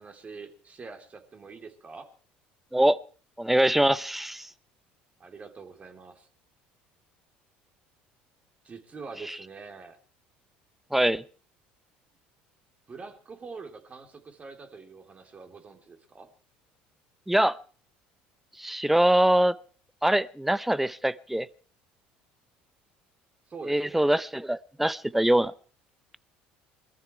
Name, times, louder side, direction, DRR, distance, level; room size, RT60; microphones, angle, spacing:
voice 1, 0.0-2.1 5.2-6.3 8.6-10.0 12.9-16.3 23.5-24.1, right 4 dB, 30° right, 3.5 m, -45 dB
voice 2, 3.4-4.5 10.9-11.2 17.3-17.6 18.6-19.6 20.0-21.5 23.6-25.5, right 1 dB, 5° right, 0.8 m, -23 dB
21.5 x 14.0 x 4.7 m
hypercardioid pair, 75°, 4 cm